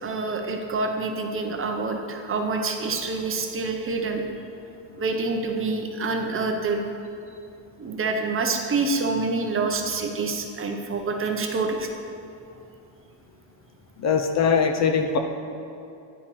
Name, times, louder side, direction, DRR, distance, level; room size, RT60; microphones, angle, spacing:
voice 1, 0.0-4.2 5.0-6.8 7.8-11.9, right 3 dB, 30° right, 4 dB, 0.6 m, -27 dB
voice 2, 14.0-15.2, left 6 dB, 40° left, 6 dB, 0.5 m, -21 dB
10.0 x 8.6 x 3.0 m, 2.6 s
cardioid pair, 145°, 43 cm